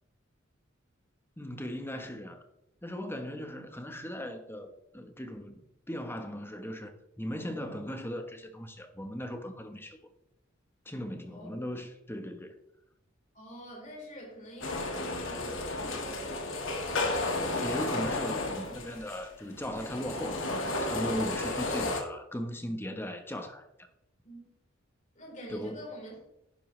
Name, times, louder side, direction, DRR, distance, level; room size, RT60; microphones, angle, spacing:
voice 1, 1.4-2.5 2.8-10.0 10.8-12.6 17.6-23.7 25.5-25.8, equal, 10° left, 1.2 m, -38 dB
voice 2, 13.3-16.8 24.2-24.4 25.2-26.2, equal, 40° left, 4.2 m, -46 dB
sound 1, 14.6-22.0, left 2 dB, 70° left, 2.0 m, -33 dB
11.0 x 9.8 x 3.3 m
head